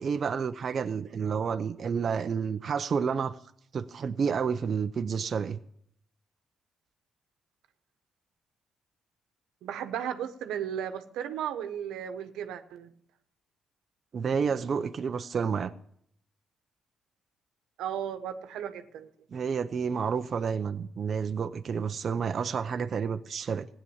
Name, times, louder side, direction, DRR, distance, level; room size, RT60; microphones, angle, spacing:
voice 1, 0.0-3.3 3.7-5.6 14.1-15.7 19.3-23.7, right 6 dB, 50° right, 7 dB, 0.6 m, -30 dB
voice 2, 9.6-12.9 17.8-19.1, right 9 dB, 90° right, 9 dB, 1.1 m, -35 dB
16.0 x 9.9 x 7.1 m, 0.68 s
cardioid pair, 90°, 0 cm